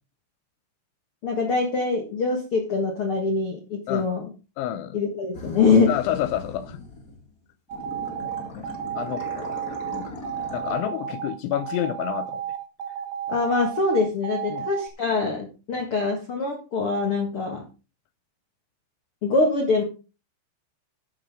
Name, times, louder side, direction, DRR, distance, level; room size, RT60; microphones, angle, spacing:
voice 1, 1.2-4.3 4.9-5.9 13.3-17.6 19.2-19.8, left 4 dB, 60° left, 1.4 m, -24 dB
voice 2, 4.6-5.0 5.9-6.8 8.5-8.7 9.0-9.6 9.9-10.1 10.5-12.4 14.5-14.7, left 12 dB, 80° left, 3.0 m, -29 dB
sound 1, 5.3-7.3 7.7-10.8, left 2 dB, 40° left, 1.2 m, -39 dB
sound 2, 7.7-14.9, right 9 dB, 85° right, 4.1 m, -32 dB
12.5 x 9.5 x 3.7 m
omnidirectional pair, 5.6 m